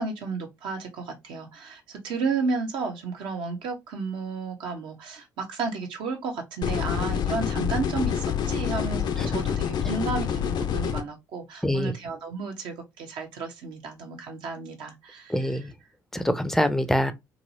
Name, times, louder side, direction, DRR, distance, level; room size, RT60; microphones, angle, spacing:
voice 1, 0.0-15.3, right 4 dB, 60° right, 0.9 m, -32 dB
sound 1, 6.6-11.0, left 8 dB, 55° left, 0.5 m, -27 dB
voice 2, 11.6-11.9 15.3-15.7 16.1-17.1, equal, 5° left, 0.5 m, -25 dB
2.9 x 2.8 x 2.7 m
figure-of-eight pair, 45°, 9 cm